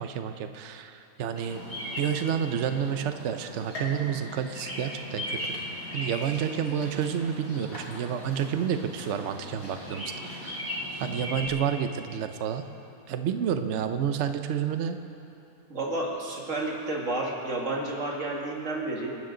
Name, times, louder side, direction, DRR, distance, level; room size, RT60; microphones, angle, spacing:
voice 1, 0.0-1.6 2.0-5.6 5.9-12.7 13.1-15.0, right 8 dB, 80° right, 8 dB, 0.6 m, -30 dB
Bird vocalization bird call bird song, 1.4-11.5, left 1 dB, 35° left, 5.0 m, -38 dB
sound 1, 3.7-5.4 5.9-6.5 7.0-7.1 8.1-8.2, left 1 dB, 80° left, 3.7 m, -43 dB
voice 2, 15.7-19.2, right 2 dB, 40° right, -1 dB, 2.3 m, -31 dB
27.5 x 12.5 x 3.9 m, 2.7 s
omnidirectional pair, 2.1 m